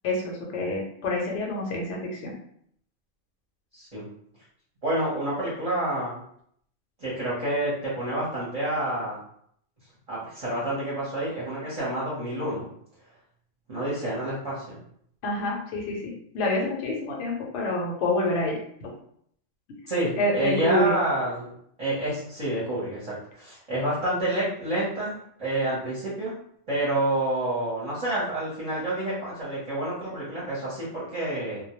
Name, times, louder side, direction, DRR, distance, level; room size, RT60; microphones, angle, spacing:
voice 1, 0.0-2.3 15.2-18.9 19.7-19.8 20.2-20.9, left 1 dB, 70° left, -1 dB, 0.8 m, -27 dB
voice 2, 3.7-4.0 4.8-6.2 7.0-9.2 10.1-12.7 13.7-14.8 19.9-21.5 21.8-26.3 26.7-31.6, right 1 dB, 35° right, -8 dB, 0.7 m, -28 dB
2.1 x 2.1 x 2.9 m, 0.67 s
omnidirectional pair, 1.3 m